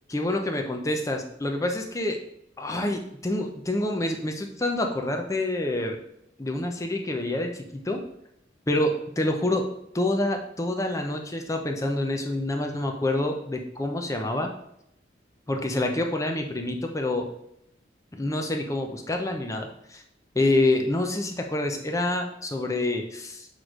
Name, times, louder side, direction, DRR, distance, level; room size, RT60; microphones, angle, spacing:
voice 1, 0.1-2.2 2.6-6.0 6.4-8.0 8.7-9.6 9.9-14.5 15.5-17.3 18.1-20.0 20.3-23.5, left 1 dB, 15° left, 3 dB, 0.6 m, -27 dB
6.2 x 3.2 x 4.9 m, 0.76 s
head